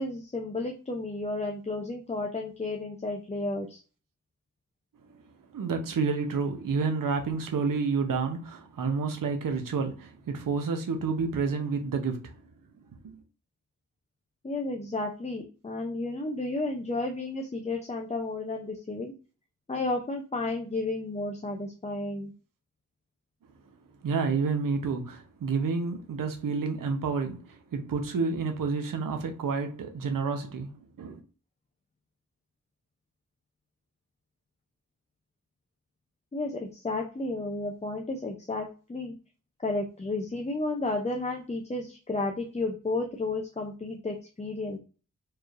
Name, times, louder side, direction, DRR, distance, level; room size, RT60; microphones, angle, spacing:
voice 1, 0.0-3.8 14.4-19.1 19.7-22.3 36.3-39.1 39.6-44.8, left 2 dB, 20° left, 0.5 m, -32 dB
voice 2, 5.5-12.3 13.0-13.2 24.0-30.7 31.0-31.2, right 4 dB, 90° right, 0.8 m, -29 dB
4.6 x 3.1 x 2.4 m
wide cardioid pair, 140°, 32 cm